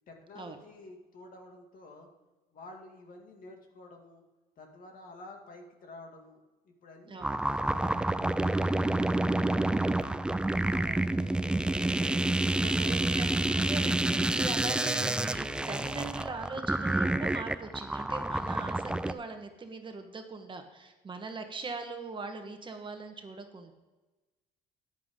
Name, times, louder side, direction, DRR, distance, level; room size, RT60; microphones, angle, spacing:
voice 1, 0.1-2.1 2.5-4.2 4.6-10.1 10.6-13.1, left 2 dB, 55° left, 2 dB, 2.3 m, -51 dB
sound 1, 7.2-19.1, right 1 dB, 5° right, 0.4 m, -28 dB
voice 2, 12.4-23.7, right 4 dB, 30° right, 5 dB, 1.4 m, -41 dB
13.5 x 10.0 x 3.8 m, 1.2 s
cardioid pair, 110°, 17 cm